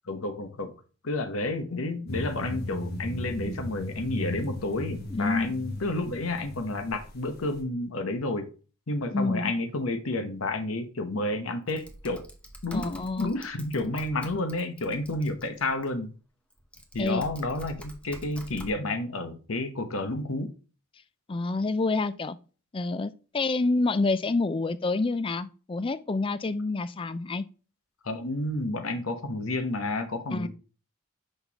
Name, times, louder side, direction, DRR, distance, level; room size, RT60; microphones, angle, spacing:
voice 1, 0.1-0.7 1.0-8.5 8.9-12.3 12.6-16.1 16.9-20.5 28.0-30.5, left 2 dB, 90° left, 1.0 m, -30 dB
sound 1, 2.1-7.6, left 1 dB, 50° left, 1.3 m, -37 dB
voice 2, 5.1-5.5 9.1-9.5 12.7-13.3 17.0-17.3 21.3-22.4 22.7-27.4 30.3-30.5, left 3 dB, 25° left, 0.4 m, -28 dB
Typing, 11.7-15.9 16.5-18.7, equal, 5° left, 0.8 m, -46 dB
6.1 x 5.3 x 2.9 m
head